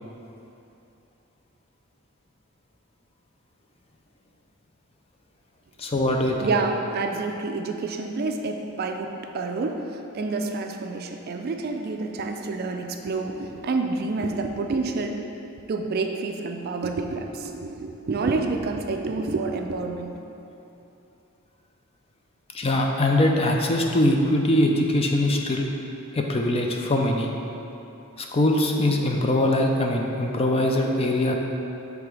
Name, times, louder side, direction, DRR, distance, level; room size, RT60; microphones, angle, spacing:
voice 1, 5.8-6.5 22.5-25.7 26.1-27.3 28.2-31.3, left 1 dB, 30° left, 1 dB, 0.5 m, -22 dB
voice 2, 6.4-15.2 15.7-20.1, right 3 dB, 45° right, 4 dB, 0.4 m, -28 dB
6.8 x 3.4 x 4.7 m, 2.9 s
head